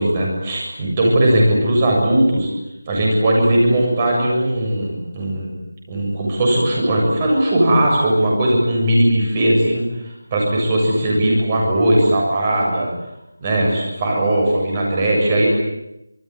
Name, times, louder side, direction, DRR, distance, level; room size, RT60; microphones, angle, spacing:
voice 1, 0.0-2.5 2.9-5.5 5.9-12.9 13.4-15.5, right 1 dB, 20° right, -1 dB, 7.5 m, -18 dB
26.5 x 21.5 x 9.9 m, 0.85 s
figure-of-eight pair, 175°, 0 cm